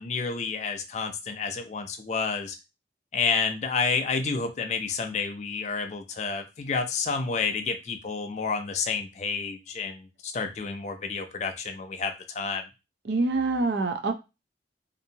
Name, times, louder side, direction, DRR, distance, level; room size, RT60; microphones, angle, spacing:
voice 1, 0.0-2.6 3.1-12.7, left 5 dB, 40° left, 6 dB, 0.4 m, -30 dB
voice 2, 13.1-14.1, right 3 dB, 75° right, 7 dB, 0.5 m, -25 dB
2.8 x 2.5 x 2.7 m, 0.26 s
head